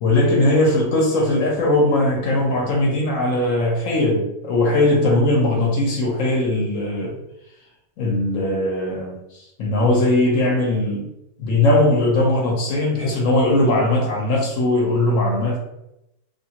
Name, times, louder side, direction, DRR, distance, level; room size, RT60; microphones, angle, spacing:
voice 1, 0.0-7.2 8.0-9.2 9.6-11.1 11.4-15.6, left 1 dB, 60° left, -1 dB, 1.0 m, -19 dB
2.9 x 2.3 x 2.8 m, 0.86 s
omnidirectional pair, 1.7 m